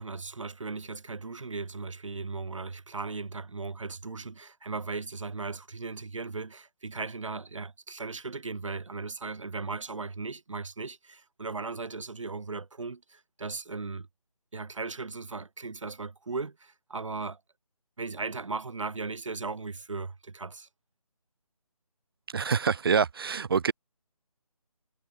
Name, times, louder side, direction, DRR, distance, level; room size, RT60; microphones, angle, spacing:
voice 1, 0.0-14.1 14.5-17.4 18.0-20.7, right 4 dB, 55° right, 4.3 m, -37 dB
voice 2, 22.3-23.7, right 6 dB, 40° right, 4.1 m, -26 dB
figure-of-eight pair, 155°, 19 cm